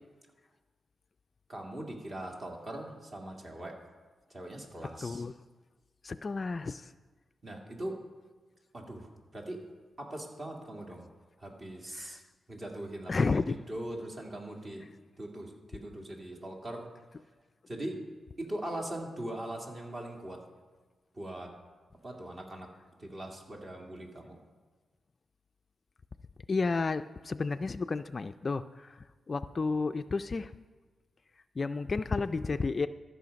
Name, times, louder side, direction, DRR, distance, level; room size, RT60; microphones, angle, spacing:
voice 1, 1.5-3.7 4.3-5.2 7.4-8.0 8.7-9.6 10.0-11.1 11.4-12.2 12.5-13.1 13.7-14.8 15.2-16.9 17.7-18.0 18.4-20.4 21.1-21.5 22.0-22.7 23.0-24.4, right 1 dB, 40° right, 1 dB, 2.1 m, -40 dB
voice 2, 5.0-5.3 6.0-6.9 12.0-12.2 13.1-13.6 26.5-30.5 31.6-32.9, left 4 dB, 40° left, 11 dB, 0.3 m, -32 dB
13.5 x 6.3 x 5.2 m, 1.3 s
cardioid pair, 85°, 0 cm